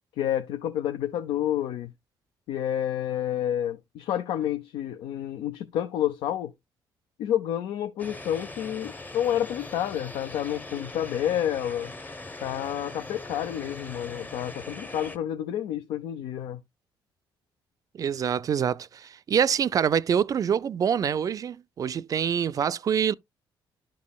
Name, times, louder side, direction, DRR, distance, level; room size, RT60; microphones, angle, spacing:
voice 1, 0.2-1.9 2.5-6.5 7.2-11.9 12.4-16.6, left 11 dB, 85° left, 0.5 m, -29 dB
sound 1, 8.0-15.2, left 2 dB, 20° left, 0.8 m, -41 dB
voice 2, 17.9-23.1, right 8 dB, 45° right, 0.3 m, -25 dB
11.5 x 5.3 x 2.3 m
cardioid pair, 100°, 9 cm